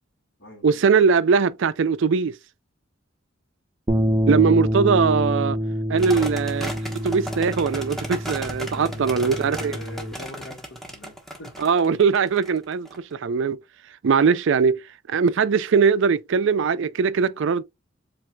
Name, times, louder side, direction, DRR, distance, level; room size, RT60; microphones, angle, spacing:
voice 1, 0.6-2.4 4.3-5.6 5.9-6.7 7.0-9.8 11.6-13.6 14.0-14.8 15.1-17.6, right 5 dB, 65° right, 0.4 m, -20 dB
sound 1, 3.9-10.1, equal, 25° right, 0.8 m, -26 dB
sound 2, 6.0-13.0, equal, ahead, 1.0 m, -35 dB
voice 2, 8.8-11.5, left 1 dB, 60° left, 2.4 m, -41 dB
7.6 x 2.8 x 2.3 m
head